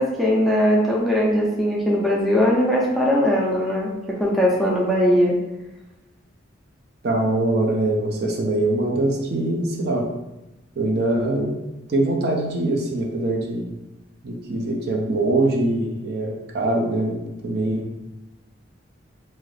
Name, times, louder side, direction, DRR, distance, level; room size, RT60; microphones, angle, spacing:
voice 1, 0.0-5.4, equal, ahead, -5 dB, 0.5 m, -20 dB
voice 2, 7.0-10.1 10.8-11.5 11.9-13.7 14.2-17.9, right 2 dB, 55° right, 0 dB, 0.5 m, -23 dB
2.6 x 2.4 x 3.2 m, 0.98 s
head